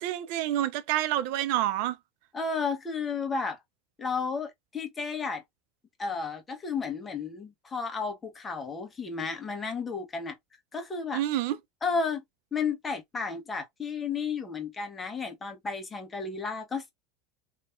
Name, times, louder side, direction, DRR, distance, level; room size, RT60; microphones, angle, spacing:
voice 1, 0.0-2.0 11.1-11.6, right 13 dB, 60° right, 0.6 m, -28 dB
voice 2, 2.3-3.6 4.0-5.4 6.0-10.4 10.7-11.2 11.8-12.2 12.5-16.9, left 5 dB, 25° left, 1.4 m, -32 dB
3.5 x 2.9 x 2.6 m
hypercardioid pair, 85°, 0 cm